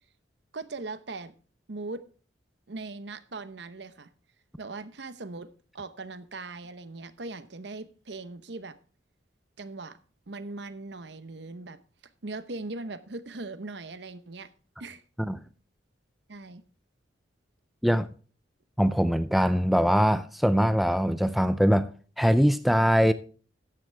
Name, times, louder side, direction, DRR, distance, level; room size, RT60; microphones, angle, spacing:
voice 1, 0.5-1.3 1.7-2.0 2.7-4.1 4.6-5.5 5.7-8.8 9.6-10.0 10.3-11.8 12.2-14.5 14.8-15.0 16.3-16.6, right 3 dB, 65° right, 0.9 m, -39 dB
voice 2, 18.8-21.9 22.2-23.1, equal, ahead, 0.4 m, -22 dB
13.5 x 9.8 x 3.3 m
head